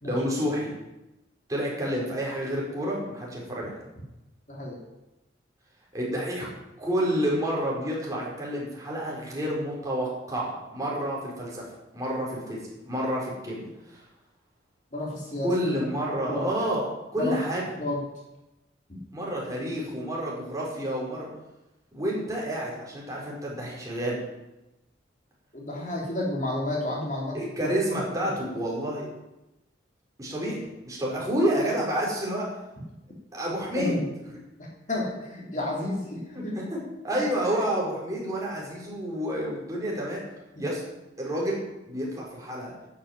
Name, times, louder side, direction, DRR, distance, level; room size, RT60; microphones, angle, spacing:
voice 1, 0.0-0.7 1.5-3.7 5.9-6.5 6.8-11.6 11.9-12.6 12.8-14.0 15.4-17.6 19.1-21.3 21.9-24.2 27.3-29.1 30.2-32.5 33.3-33.9 36.3-36.8 37.0-40.2 40.6-40.8 41.2-41.6 41.9-42.7, equal, 20° right, -4 dB, 4.6 m, -29 dB
voice 2, 14.9-15.5 16.2-16.5 17.2-17.4 17.8-18.0 18.9-19.0 25.5-27.7 33.7-34.1 34.6-36.5 40.6-40.7, left 1 dB, 40° left, -2 dB, 3.1 m, -31 dB
10.5 x 9.4 x 8.9 m, 0.97 s
head